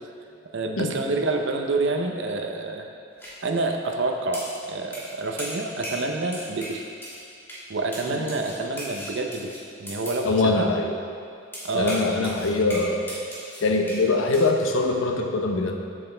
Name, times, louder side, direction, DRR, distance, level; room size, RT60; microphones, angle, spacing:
voice 1, 0.5-2.9 3.4-6.8 7.7-9.5 9.8-10.7 11.6-12.3, right 3 dB, 65° right, 3 dB, 0.7 m, -27 dB
sound 1, 3.2-3.3 4.3-4.6 4.9-5.1 5.4-6.1 6.3-7.2 7.5-7.6 7.9-10.2 11.5-14.1 14.3-14.5, equal, 10° left, 1.5 m, -37 dB
voice 2, 10.2-11.0 11.7-13.1 13.6-15.8, left 3 dB, 85° left, 3 dB, 0.8 m, -23 dB
7.9 x 7.5 x 3.3 m, 2.4 s
head